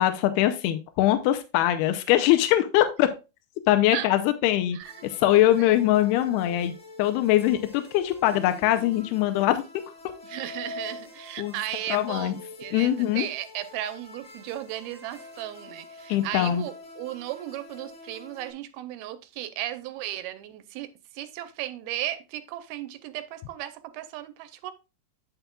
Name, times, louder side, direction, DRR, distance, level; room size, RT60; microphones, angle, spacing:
voice 1, 0.0-3.1 3.7-4.8 5.0-6.7 7.0-9.6 11.4-11.6 11.9-12.3 12.7-13.3 16.1-16.6, left 13 dB, 85° left, 2.6 m, -22 dB
voice 2, 4.7-5.1 5.6-5.7 10.2-20.9 21.1-24.7, right 13 dB, 85° right, 2.5 m, -35 dB
sound 1, 4.8-18.5, left 2 dB, 30° left, 2.9 m, -45 dB
8.9 x 7.1 x 2.3 m
omnidirectional pair, 4.5 m